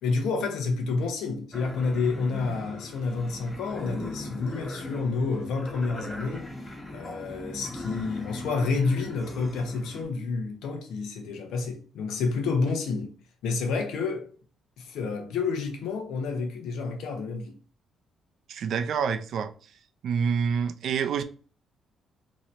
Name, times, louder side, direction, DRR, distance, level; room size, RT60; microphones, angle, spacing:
voice 1, 0.0-6.5 6.9-13.1 13.4-14.3 14.8-17.5, left 4 dB, 85° left, 0.8 m, -29 dB
sound 1, 1.5-10.0, left 1 dB, 20° left, 1.6 m, -39 dB
voice 2, 18.5-19.5 20.0-21.2, right 6 dB, 70° right, 0.4 m, -27 dB
3.0 x 2.7 x 4.2 m
cardioid pair, 90°, 0 cm